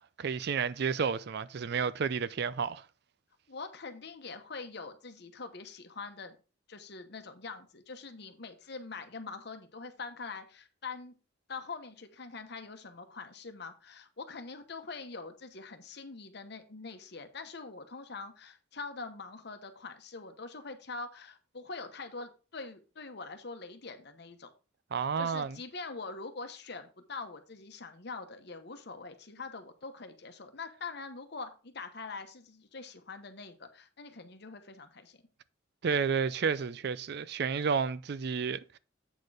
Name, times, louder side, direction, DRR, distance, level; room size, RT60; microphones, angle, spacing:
voice 1, 0.2-2.9 24.9-25.6 35.8-38.8, right 6 dB, 55° right, 0.4 m, -31 dB
voice 2, 3.5-6.4 6.7-11.2 11.5-24.5 25.2-35.2, left 4 dB, 55° left, 1.0 m, -44 dB
8.2 x 4.4 x 4.8 m
head